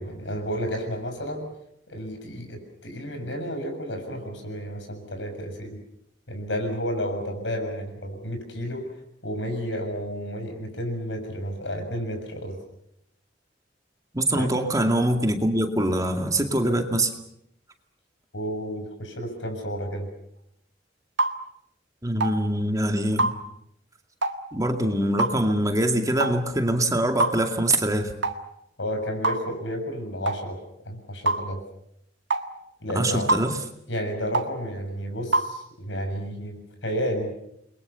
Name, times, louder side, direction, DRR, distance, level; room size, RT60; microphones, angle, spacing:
voice 1, 0.0-1.5 1.9-5.8 6.3-8.9 9.2-12.6 14.3-14.5 18.3-20.1 28.8-30.6 30.9-31.6 32.8-33.3 33.9-37.3, equal, 85° left, 6 dB, 6.9 m, -31 dB
voice 2, 14.1-17.1 22.0-23.3 24.5-28.1 32.9-33.6, right 1 dB, 20° right, 5 dB, 2.3 m, -24 dB
sound 1, 21.2-21.4 22.2-22.4 23.2-23.4 24.2-24.4 25.2-25.4 26.2-26.4 27.2-27.4 28.2-28.4 29.2-29.4 30.3-30.4 31.3-31.4 32.3-32.5 33.3-33.5 34.3-34.5 35.3-35.5, right 2 dB, 80° right, 1.7 m, -24 dB
29.0 x 22.5 x 7.0 m, 0.76 s
head